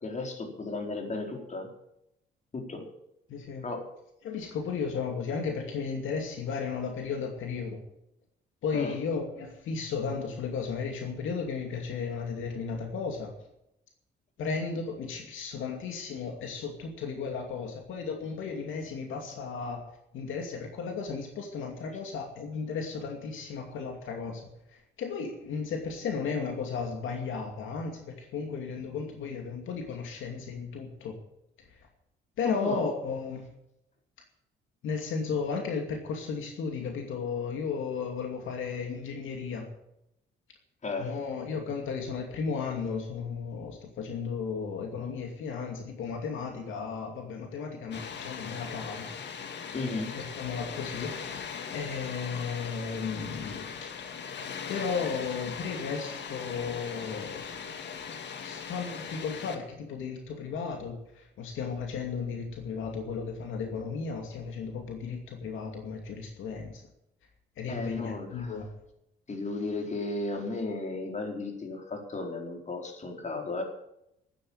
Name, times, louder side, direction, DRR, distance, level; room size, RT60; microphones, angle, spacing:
voice 1, 0.0-1.7 2.5-2.8 3.6-3.8 8.7-8.9 32.4-32.8 40.8-41.1 49.7-50.2 67.7-68.6 69.3-73.6, left 3 dB, 35° left, 3 dB, 4.4 m, -34 dB
voice 2, 3.3-3.7 4.2-7.8 8.6-13.3 14.4-19.9 20.1-31.2 31.7-31.8 32.4-33.5 34.8-39.7 41.0-49.1 50.1-51.4 51.7-53.9 54.7-57.5 58.4-66.8 67.6-68.7, left 5 dB, 80° left, 3 dB, 2.5 m, -34 dB
Water, 47.9-59.6, left 6 dB, 60° left, 2.2 m, -39 dB
12.5 x 9.8 x 8.8 m, 0.81 s
cardioid pair, 90°, 20 cm